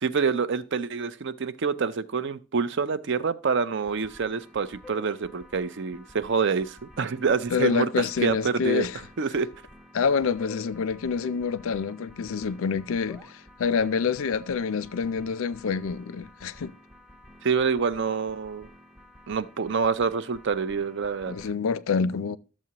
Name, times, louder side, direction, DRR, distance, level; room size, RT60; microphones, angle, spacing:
voice 1, 0.0-8.9 9.2-9.5 17.4-18.7 19.3-21.3, right 5 dB, 55° right, 0.5 m, -27 dB
sound 1, 3.7-21.5, left 1 dB, ahead, 0.6 m, -51 dB
voice 2, 7.5-8.9 9.9-16.7 21.3-22.4, left 6 dB, 65° left, 0.4 m, -27 dB
12.0 x 7.3 x 2.9 m
head